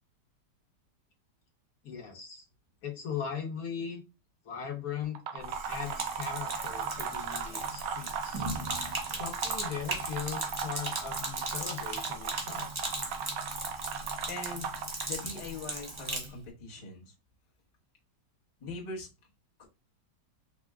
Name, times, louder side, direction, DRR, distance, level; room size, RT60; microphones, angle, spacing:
voice 1, 1.8-2.4 2.8-4.0 4.4-8.4 9.1-12.7, left 7 dB, 60° left, 2 dB, 1.2 m, -39 dB
sound 1, 5.0-15.4, right 7 dB, 90° right, 1.3 m, -37 dB
Sink (filling or washing), 5.4-16.3, right 1 dB, 50° right, 0.3 m, -38 dB
voice 2, 14.3-17.1 18.6-19.1 19.6-19.7, left 3 dB, 25° left, -2 dB, 0.7 m, -42 dB
4.3 x 2.1 x 3.5 m, 0.28 s
omnidirectional pair, 1.8 m